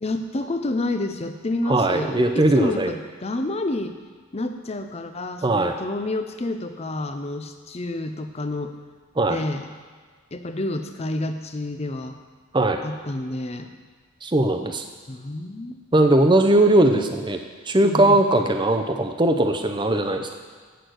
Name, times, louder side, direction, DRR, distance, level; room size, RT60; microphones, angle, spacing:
voice 1, 0.0-4.0 4.3-8.8 9.3-9.7 10.3-12.2 12.8-13.7 15.1-15.8 17.8-18.2, left 2 dB, 30° left, 8 dB, 0.6 m, -29 dB
voice 2, 1.7-2.9 5.4-5.8 9.2-9.4 12.5-12.8 14.2-14.8 15.9-17.4 17.7-20.3, right 1 dB, 20° right, 5 dB, 0.7 m, -19 dB
8.0 x 6.5 x 8.0 m, 1.5 s
head